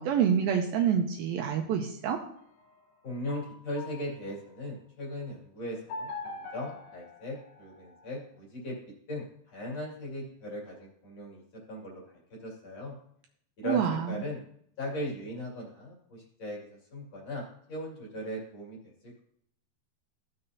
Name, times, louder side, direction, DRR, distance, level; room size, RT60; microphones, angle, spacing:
voice 1, 0.0-2.2 13.6-14.1, right 8 dB, 80° right, 3 dB, 2.3 m, -27 dB
sound 1, 2.4-4.6 5.9-8.1, left 3 dB, 80° left, 1.8 m, -44 dB
voice 2, 3.0-8.7 9.1-11.4 11.7-12.0 12.4-12.9 13.6-14.4 14.8-16.6 16.9-19.2, left 1 dB, 45° left, -3 dB, 3.0 m, -38 dB
15.0 x 6.6 x 2.8 m, 0.68 s
omnidirectional pair, 4.8 m